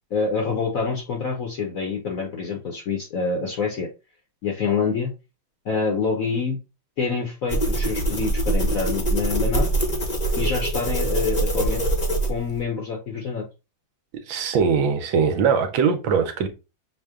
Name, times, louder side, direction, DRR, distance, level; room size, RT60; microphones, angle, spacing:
voice 1, 0.1-3.9 4.4-5.1 5.6-6.6 7.0-9.7 10.4-11.8 12.3-13.4, left 5 dB, 60° left, 0.9 m, -26 dB
sound 1, 7.5-12.6, right 1 dB, 35° left, 0.6 m, -23 dB
voice 2, 14.1-16.5, right 6 dB, 75° right, 1.4 m, -21 dB
6.5 x 2.2 x 3.5 m
omnidirectional pair, 2.3 m